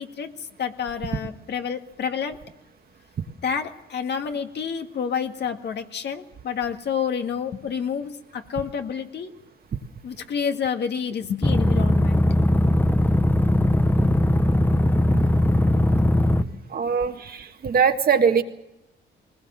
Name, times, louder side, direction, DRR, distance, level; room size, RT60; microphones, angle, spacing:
voice 1, 0.0-2.4 3.4-9.3 10.0-12.2 16.5-16.6, left 7 dB, 60° left, 5 dB, 1.8 m, -29 dB
sound 1, 11.4-16.4, left 1 dB, 10° left, 1.0 m, -19 dB
voice 2, 16.7-18.4, right 6 dB, 50° right, 6 dB, 1.7 m, -21 dB
20.0 x 20.0 x 7.5 m, 0.90 s
cardioid pair, 90°, 20 cm